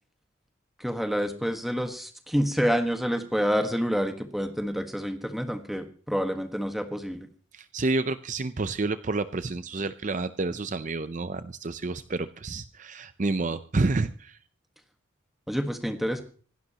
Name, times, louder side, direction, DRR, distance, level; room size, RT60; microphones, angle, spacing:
voice 1, 0.8-7.3 15.5-16.2, equal, ahead, 6 dB, 1.4 m, -28 dB
voice 2, 7.5-14.4, right 3 dB, 40° right, 12 dB, 0.6 m, -29 dB
26.0 x 12.0 x 2.9 m, 0.41 s
head